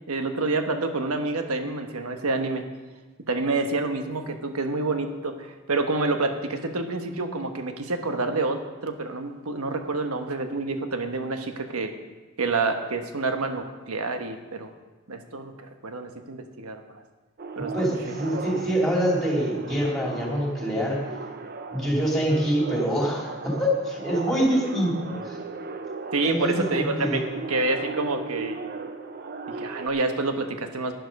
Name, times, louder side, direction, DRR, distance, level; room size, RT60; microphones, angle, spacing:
voice 1, 0.1-2.6 3.3-11.9 12.4-14.7 15.1-16.8 17.6-18.0 26.1-27.2 27.5-28.6 29.6-30.9, right 3 dB, 85° right, 6 dB, 1.2 m, -28 dB
sound 1, 17.4-29.9, right 3 dB, 45° right, 0.7 m, -36 dB
voice 2, 17.7-21.0 21.7-25.4 26.2-27.2, equal, ahead, -2 dB, 2.8 m, -25 dB
11.5 x 10.5 x 5.3 m, 1.3 s
head